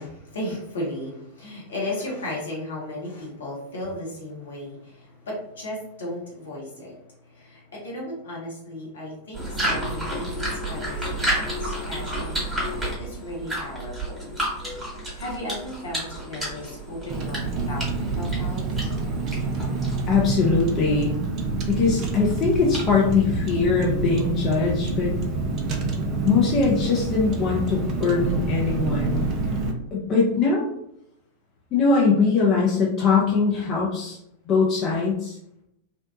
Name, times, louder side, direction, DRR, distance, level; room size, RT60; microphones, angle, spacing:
voice 1, 0.0-12.5 13.0-14.3 15.0-18.7, left 1 dB, 70° left, -5 dB, 1.0 m, -35 dB
sound 1, 9.3-20.2, right 1 dB, 10° right, 1.2 m, -31 dB
Car, 17.1-29.7, right 3 dB, 35° right, 0.4 m, -27 dB
voice 2, 20.1-21.2 21.7-25.1 26.2-29.3 29.9-30.7 31.7-34.2 34.4-35.4, left 4 dB, 35° left, -3 dB, 0.5 m, -21 dB
2.7 x 2.1 x 2.5 m, 0.77 s
figure-of-eight pair, 90°, 0 cm